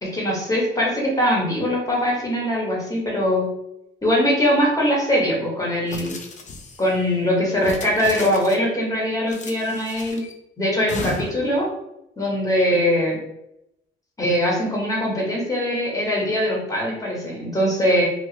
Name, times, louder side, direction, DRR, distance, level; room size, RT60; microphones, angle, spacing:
voice 1, 0.0-3.5 4.0-6.2 6.8-10.2 10.6-11.7 12.2-13.2 14.2-18.0, equal, 15° left, -4 dB, 1.3 m, -22 dB
sound 1, 5.9-6.9 7.6-8.7 9.3-10.3 10.9-11.5, left 3 dB, 40° left, 0.5 m, -35 dB
2.9 x 2.6 x 2.8 m, 0.82 s
cardioid pair, 90°, 20 cm